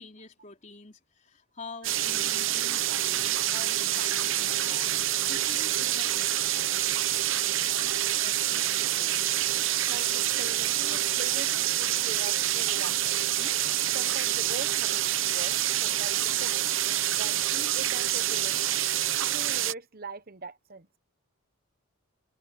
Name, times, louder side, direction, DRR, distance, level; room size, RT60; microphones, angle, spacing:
voice 1, 0.0-4.9 5.3-8.0 8.2-9.2, left 3 dB, 35° left, 4.3 m, -47 dB
sound 1, 1.8-19.7, right 12 dB, 65° right, 0.9 m, -27 dB
voice 2, 9.9-13.5 13.9-16.7 17.1-18.8 19.2-20.9, right 3 dB, 45° right, 1.1 m, -42 dB
open air
head